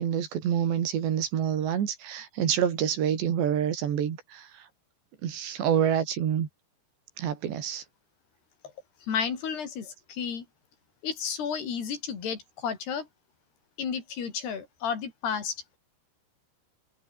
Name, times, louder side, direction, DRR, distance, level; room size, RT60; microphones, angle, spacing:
voice 1, 0.0-4.7 5.2-6.5 7.2-7.8, right 9 dB, 75° right, 5.1 m, -27 dB
voice 2, 9.1-10.4 11.0-13.0 13.8-15.5, left 7 dB, 65° left, 5.9 m, -32 dB
omnidirectional pair, 5.1 m